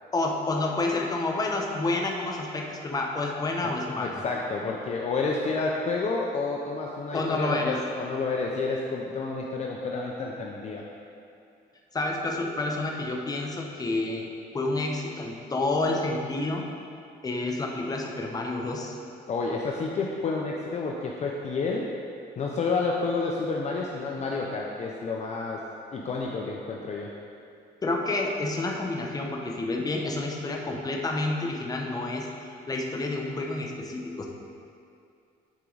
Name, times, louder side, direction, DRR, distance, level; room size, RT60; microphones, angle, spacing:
voice 1, 0.1-4.2 7.1-7.8 11.9-14.3 14.5-16.6 17.2-19.0 27.8-32.3 32.7-34.3, left 2 dB, 20° left, 0 dB, 1.0 m, -29 dB
voice 2, 4.0-10.8 19.3-21.8 22.4-25.6 25.9-27.1, left 4 dB, 40° left, -1 dB, 0.7 m, -30 dB
10.0 x 4.6 x 4.0 m, 2.5 s
cardioid pair, 110°, 17 cm